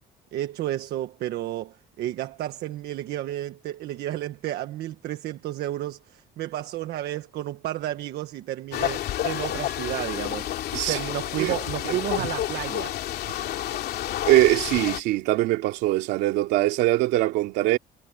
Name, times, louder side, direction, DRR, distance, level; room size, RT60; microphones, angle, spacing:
voice 1, 0.3-10.5 10.9-13.5, right 13 dB, 75° right, 1.5 m, -32 dB
sound 1, 8.7-15.0, left 12 dB, 70° left, 2.6 m, -30 dB
voice 2, 11.8-12.3 14.3-17.8, right 16 dB, 90° right, 2.9 m, -22 dB
cardioid pair, 110°, 17 cm